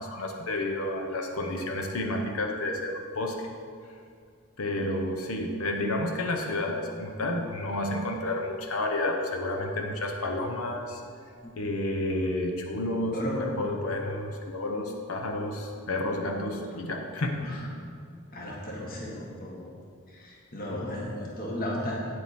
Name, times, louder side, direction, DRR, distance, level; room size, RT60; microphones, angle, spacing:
voice 1, 0.0-3.5 4.6-11.0 11.6-17.7, left 1 dB, 80° left, 2 dB, 1.0 m, -30 dB
voice 2, 18.3-19.6 20.1-22.0, left 1 dB, 45° left, -3 dB, 1.6 m, -35 dB
9.0 x 7.8 x 4.3 m, 2.2 s
head